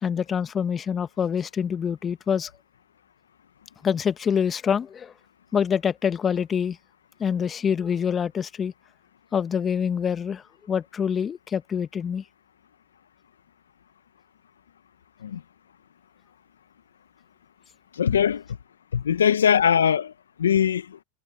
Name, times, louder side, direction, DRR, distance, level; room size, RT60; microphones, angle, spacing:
voice 1, 0.0-2.5 3.8-5.1 5.5-6.8 7.2-8.7 9.3-12.2, left 7 dB, 25° left, 1.5 m, -26 dB
voice 2, 18.0-18.4 18.9-20.1 20.4-21.0, left 8 dB, 85° left, 1.2 m, -21 dB
hypercardioid pair, 95°, 0 cm